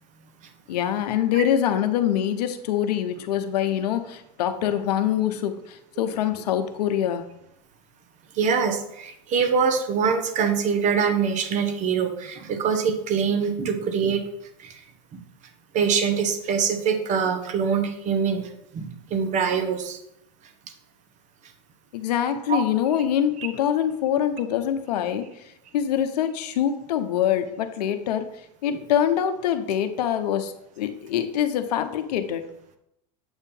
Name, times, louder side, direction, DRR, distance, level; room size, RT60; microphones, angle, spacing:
voice 1, 0.7-7.2 21.9-25.4 25.7-28.3 28.6-32.4, left 10 dB, 80° left, 9 dB, 0.7 m, -24 dB
voice 2, 8.3-14.2 14.6-14.8 15.1-15.2 15.7-20.0 22.5-22.6 23.4-23.5 28.7-28.8, right 6 dB, 35° right, 7 dB, 1.0 m, -24 dB
8.0 x 2.7 x 5.3 m, 0.79 s
supercardioid pair, 120°, 21 cm